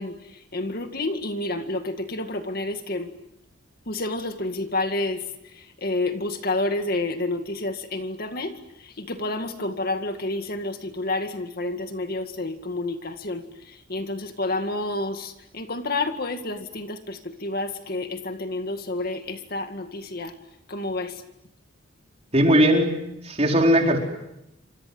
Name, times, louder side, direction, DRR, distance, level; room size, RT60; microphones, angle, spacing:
voice 1, 0.0-3.1 3.9-20.3 20.7-21.2, left 2 dB, 50° left, 7 dB, 2.1 m, -29 dB
voice 2, 22.3-24.0, equal, 35° right, 1 dB, 4.8 m, -19 dB
28.5 x 26.5 x 7.9 m, 0.87 s
head